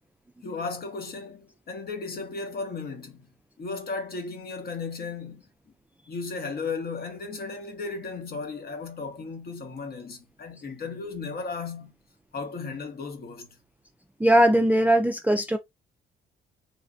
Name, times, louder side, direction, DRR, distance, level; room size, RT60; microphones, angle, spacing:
voice 1, 0.4-3.3 3.6-5.5 6.1-11.9 12.3-13.5, left 4 dB, 50° left, 1.1 m, -35 dB
voice 2, 14.2-15.6, right 1 dB, 10° right, 0.4 m, -20 dB
3.2 x 2.2 x 2.4 m
cardioid pair, 90°, 20 cm